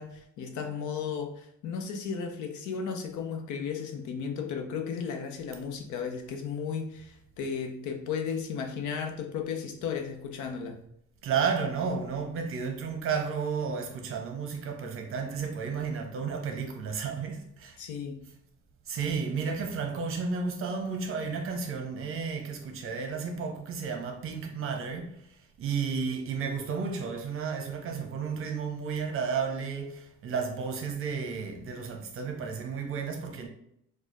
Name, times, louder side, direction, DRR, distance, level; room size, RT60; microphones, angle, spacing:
voice 1, 0.0-10.8 17.8-18.2, left 6 dB, 75° left, 0.9 m, -35 dB
voice 2, 11.2-17.8 18.9-25.2 25.6-33.5, right 5 dB, 45° right, 0.8 m, -32 dB
4.4 x 2.4 x 4.5 m
cardioid pair, 165°, 30 cm